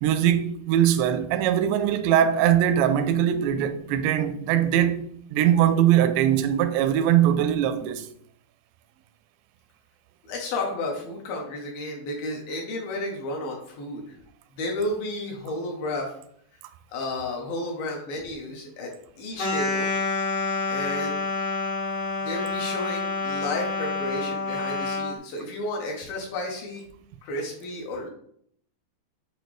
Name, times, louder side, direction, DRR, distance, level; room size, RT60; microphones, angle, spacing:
voice 1, 0.0-8.1, right 10 dB, 85° right, 2.7 m, -21 dB
voice 2, 10.3-14.2 14.5-16.1 16.9-18.9 19.2-19.9 20.7-21.2 22.2-26.8 27.2-28.1, left 2 dB, 70° left, 2.5 m, -32 dB
sound 1, 19.4-25.2, left 3 dB, 55° left, 0.9 m, -28 dB
7.8 x 4.6 x 3.3 m
omnidirectional pair, 5.0 m